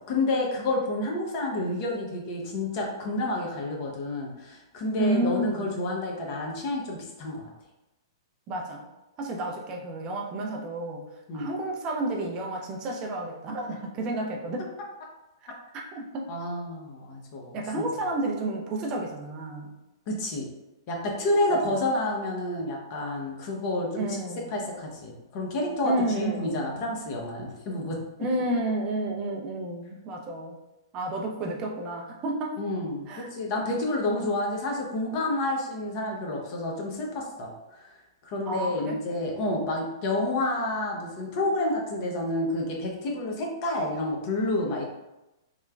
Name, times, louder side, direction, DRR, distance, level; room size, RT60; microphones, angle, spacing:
voice 1, 0.1-7.5 11.3-11.5 16.3-17.8 20.1-20.5 20.9-24.2 24.5-28.0 32.6-38.0 38.2-44.8, left 2 dB, 45° left, -1 dB, 0.7 m, -29 dB
voice 2, 5.0-5.7 8.5-8.8 9.2-11.1 11.3-14.7 15.9-16.3 17.5-19.7 21.5-21.6 24.0-24.5 25.8-26.8 28.2-30.5 30.9-32.6 33.1-33.3 38.5-39.0, right 2 dB, 30° right, 0 dB, 0.4 m, -31 dB
3.0 x 2.1 x 2.3 m, 0.98 s
hypercardioid pair, 120°, 2 cm